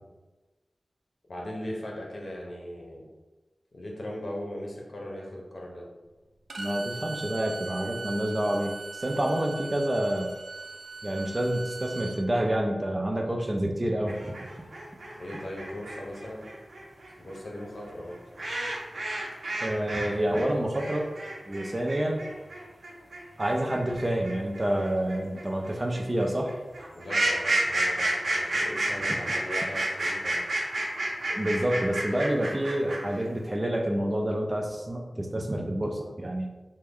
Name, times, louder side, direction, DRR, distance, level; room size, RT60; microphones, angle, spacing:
voice 1, 1.3-3.0 3.7-5.9 15.2-16.5 17.2-18.2 26.9-30.4, left 1 dB, 65° left, -2 dB, 0.8 m, -38 dB
Bowed string instrument, 6.5-12.2, right 4 dB, 85° right, 0.4 m, -40 dB
voice 2, 6.6-10.3 11.0-14.3 19.6-21.1 21.5-22.2 23.4-26.6 31.3-36.5, right 1 dB, 30° right, 2 dB, 0.5 m, -28 dB
sound 1, 14.1-20.1 20.3-33.2, right 1 dB, 65° right, 0.7 m, -30 dB
3.4 x 2.2 x 3.5 m, 1.2 s
wide cardioid pair, 70°, 0 cm